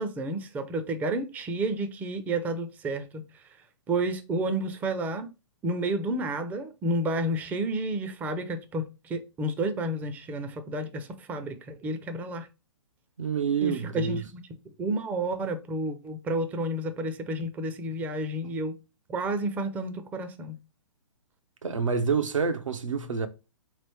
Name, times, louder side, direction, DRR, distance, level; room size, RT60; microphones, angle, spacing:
voice 1, 0.0-3.6 3.9-5.3 5.6-12.5 13.6-14.2 14.8-18.8 19.1-20.6, right 1 dB, 10° right, 0.4 m, -31 dB
voice 2, 13.2-14.2 21.6-23.3, right 6 dB, 85° right, 0.8 m, -27 dB
3.7 x 3.2 x 3.3 m
hypercardioid pair, 130°, 16 cm